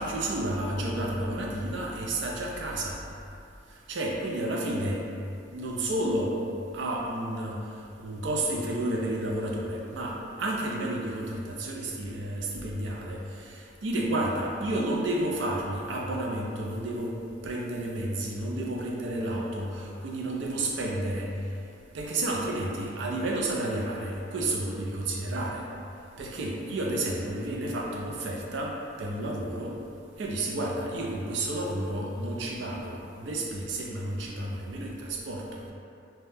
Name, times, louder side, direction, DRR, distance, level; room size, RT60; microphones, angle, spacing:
voice 1, 0.0-3.0 3.9-5.0 5.5-6.4 6.7-7.6 8.0-17.2 17.4-21.3 21.9-25.6 26.2-29.7 30.2-35.7, right 1 dB, 70° right, -2 dB, 0.4 m, -31 dB
3.3 x 2.2 x 2.7 m, 2.5 s
head